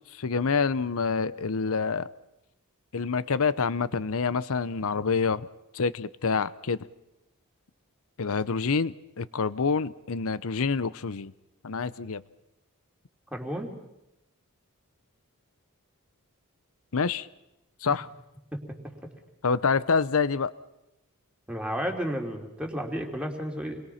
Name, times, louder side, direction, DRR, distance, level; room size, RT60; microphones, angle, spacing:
voice 1, 0.1-2.1 2.9-5.5 5.7-6.9 8.2-11.3 11.6-12.2 16.9-17.3 17.8-18.1 19.4-20.5, left 5 dB, 70° left, 17 dB, 0.8 m, -27 dB
voice 2, 13.3-13.8 18.5-18.6 21.5-23.8, equal, 5° right, 2 dB, 3.0 m, -32 dB
29.0 x 22.0 x 5.8 m, 0.90 s
head